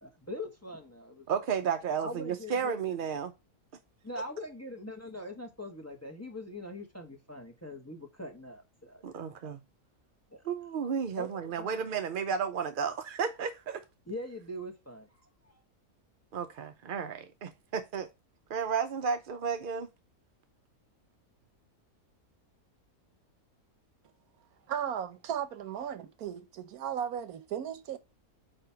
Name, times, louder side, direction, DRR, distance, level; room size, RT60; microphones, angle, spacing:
voice 1, 0.0-1.3 2.0-2.7 3.1-3.2 4.0-9.3 10.3-10.4 11.2-11.9 14.1-15.1 15.4-15.6, left 1 dB, 10° left, 1.0 m, -42 dB
voice 2, 1.3-3.3 9.0-9.6 10.5-13.8 16.3-18.1 18.5-19.9, right 6 dB, 60° right, 0.5 m, -33 dB
voice 3, 24.7-28.0, right 9 dB, 80° right, 1.3 m, -36 dB
8.7 x 2.9 x 5.6 m
omnidirectional pair, 1.5 m